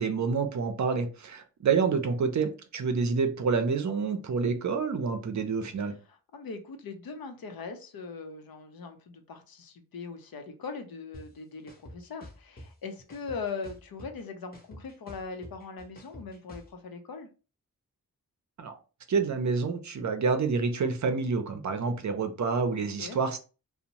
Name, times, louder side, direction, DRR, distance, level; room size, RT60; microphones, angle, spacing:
voice 1, 0.0-5.9 18.6-18.7 19.1-23.4, right 5 dB, 55° right, 7 dB, 0.5 m, -28 dB
voice 2, 6.3-17.3 23.0-23.2, left 4 dB, 80° left, 6 dB, 0.6 m, -40 dB
sound 1, 11.1-11.2 11.7-12.7 13.1-14.2 14.5-16.7, left 1 dB, 25° left, 0.7 m, -46 dB
2.6 x 2.0 x 2.9 m, 0.34 s
wide cardioid pair, 140°, 35 cm